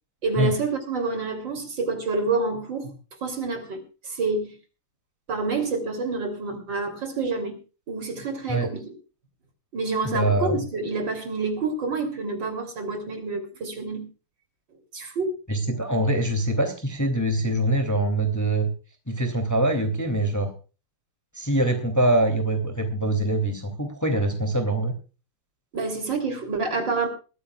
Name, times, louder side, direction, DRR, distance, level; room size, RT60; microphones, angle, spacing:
voice 1, 0.2-2.9 3.2-4.6 5.3-7.6 7.9-8.9 9.7-14.1 14.9-15.4 25.7-27.1, right 3 dB, 55° right, 6 dB, 3.8 m, -28 dB
voice 2, 10.0-10.6 15.5-18.7 19.1-20.5 21.3-24.9, right 1 dB, 10° left, 5 dB, 2.7 m, -24 dB
21.5 x 15.0 x 2.4 m, 0.34 s
omnidirectional pair, 2.4 m